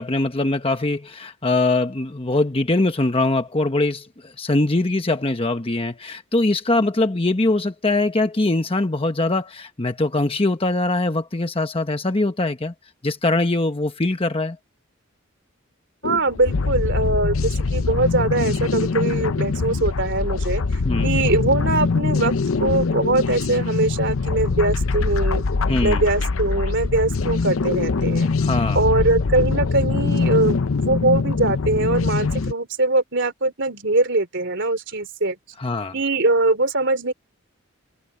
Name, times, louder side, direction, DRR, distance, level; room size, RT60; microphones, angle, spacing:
voice 1, 0.0-12.7 13.0-14.6 20.8-21.1 25.7-26.0 28.4-28.8 35.6-35.9, left 2 dB, 25° left, 1.1 m, -22 dB
sound 1, 16.0-32.5, left 4 dB, 80° left, 0.7 m, -23 dB
voice 2, 16.0-20.6 21.0-25.4 25.8-28.3 28.7-35.4 35.9-37.1, right 2 dB, 60° right, 3.6 m, -22 dB
head